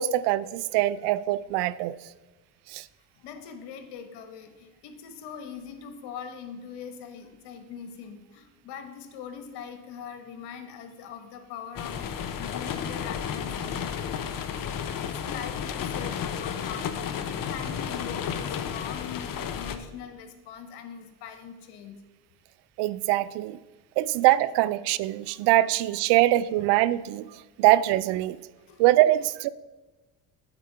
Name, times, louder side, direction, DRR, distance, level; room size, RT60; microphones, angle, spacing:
voice 1, 0.0-2.0 2.7-2.8 22.8-23.6 24.0-27.3 27.6-28.4 28.8-29.5, right 15 dB, 70° right, 17 dB, 0.5 m, -23 dB
voice 2, 3.1-22.0 28.6-28.8, left 7 dB, 70° left, 7 dB, 1.3 m, -42 dB
sound 1, 11.8-19.8, left 8 dB, 50° left, 0.9 m, -32 dB
8.8 x 4.6 x 6.7 m, 1.2 s
hypercardioid pair, 65°, 43 cm